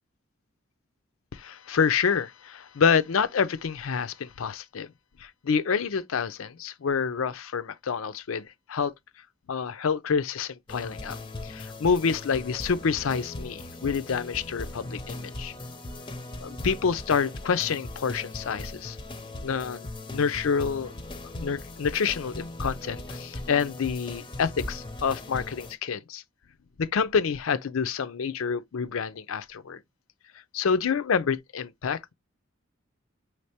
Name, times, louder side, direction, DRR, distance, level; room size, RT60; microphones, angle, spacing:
voice 1, 1.3-4.9 5.2-8.4 8.7-8.9 9.5-11.2 11.4-15.5 16.4-19.0 19.4-20.9 21.4-26.2 26.8-29.8 30.5-32.1, left 6 dB, 80° left, 0.5 m, -27 dB
sound 1, 10.7-25.7, left 2 dB, 25° left, 0.6 m, -39 dB
5.5 x 3.3 x 2.8 m
head